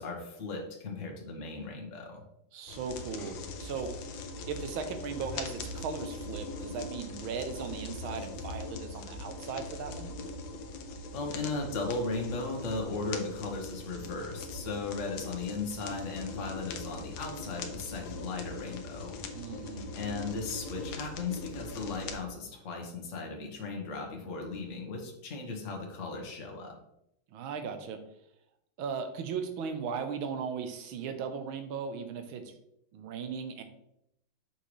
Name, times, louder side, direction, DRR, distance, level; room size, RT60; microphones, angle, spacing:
voice 1, 0.0-2.2 11.1-19.2 19.9-26.7, left 3 dB, 45° left, 1 dB, 1.3 m, -36 dB
voice 2, 2.5-3.9 4.5-10.1 19.3-19.9 27.3-28.0 28.8-32.4 32.9-33.6, right 6 dB, 75° right, 7 dB, 1.6 m, -37 dB
sound 1, 2.7-22.2, left 3 dB, 70° left, 1.5 m, -41 dB
6.3 x 5.6 x 3.1 m, 0.78 s
omnidirectional pair, 2.3 m